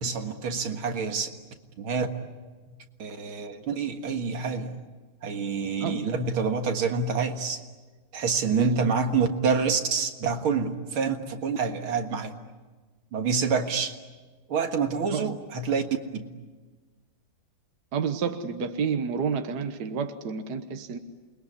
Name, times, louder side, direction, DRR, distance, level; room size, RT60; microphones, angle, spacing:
voice 1, 0.0-1.3 1.8-2.1 3.0-4.8 5.2-7.6 8.1-12.3 13.1-13.9 14.5-15.8 16.1-16.3, right 5 dB, 80° right, 5 dB, 2.5 m, -27 dB
voice 2, 5.8-6.1 8.5-8.9 15.1-15.4 17.9-21.0, right 6 dB, 55° right, 8 dB, 1.7 m, -30 dB
28.5 x 21.5 x 9.7 m, 1.4 s
omnidirectional pair, 2.3 m